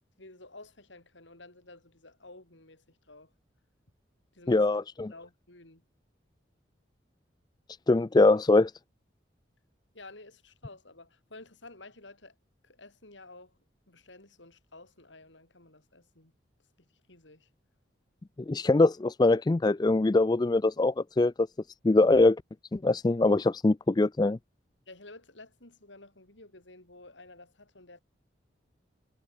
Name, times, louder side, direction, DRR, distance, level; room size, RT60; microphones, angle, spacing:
voice 1, 0.2-3.3 4.3-4.7 5.1-5.8 9.9-12.4 12.6-13.6 13.9-16.3 16.8-17.5 24.9-28.0, left 2 dB, 80° left, 6.6 m, -52 dB
voice 2, 4.5-5.1 7.9-8.7 18.5-21.5 21.8-22.4 22.7-24.4, left 2 dB, 20° left, 0.4 m, -23 dB
head